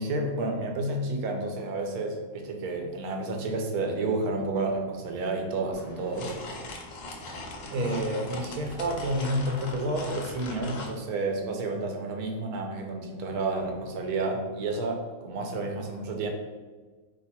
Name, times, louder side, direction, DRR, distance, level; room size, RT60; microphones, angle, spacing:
voice 1, 0.0-6.6 7.7-16.3, right 2 dB, 90° right, 2 dB, 1.1 m, -30 dB
sound 1, 5.7-11.0, left 2 dB, 65° left, 0.6 m, -40 dB
2.8 x 2.2 x 4.1 m, 1.4 s
omnidirectional pair, 1.5 m